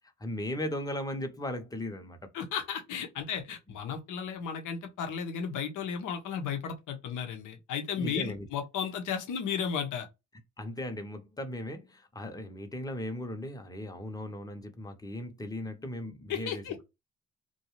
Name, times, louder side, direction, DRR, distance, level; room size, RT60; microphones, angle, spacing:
voice 1, 0.2-2.2 8.0-8.5 10.6-16.8, left 1 dB, 10° left, 0.7 m, -37 dB
voice 2, 2.3-10.1 16.3-16.8, left 7 dB, 85° left, 0.8 m, -34 dB
2.6 x 2.3 x 2.9 m
cardioid pair, 90°, 30 cm